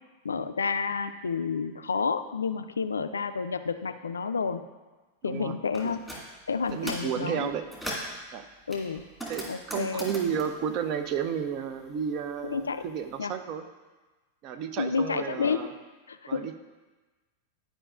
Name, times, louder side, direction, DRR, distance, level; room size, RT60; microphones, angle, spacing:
voice 1, 0.2-4.7 5.2-6.0 6.5-7.5 8.7-9.0 9.5-10.1 12.4-12.8 13.2-13.3 14.8-15.7 16.1-16.5, left 5 dB, 75° left, 10 dB, 0.4 m, -30 dB
voice 2, 5.2-5.6 5.8-5.9 6.7-7.7 8.3-8.4 9.3-13.6 14.4-15.7 16.3-16.5, right 7 dB, 40° right, 8 dB, 0.6 m, -32 dB
sound 1, 5.7-6.2 6.6-7.1 7.5-8.2 8.7-11.6 11.9-13.0, right 1 dB, 5° right, 1.9 m, -39 dB
11.0 x 5.0 x 2.5 m, 1.3 s
figure-of-eight pair, 90°, 0 cm